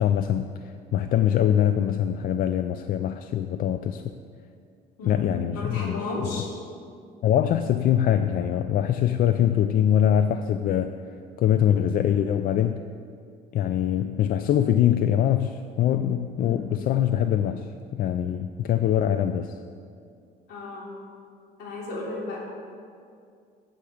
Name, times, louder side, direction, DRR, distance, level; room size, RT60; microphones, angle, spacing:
voice 1, 0.0-4.0 5.0-6.4 7.2-10.9 11.4-12.8 13.5-19.6, left 10 dB, 60° left, 9 dB, 0.4 m, -23 dB
voice 2, 5.0-6.5 16.4-16.7 20.5-20.9 21.6-22.4, left 2 dB, 80° left, -4 dB, 3.1 m, -34 dB
8.5 x 8.0 x 7.2 m, 2.3 s
cardioid pair, 110°, 17 cm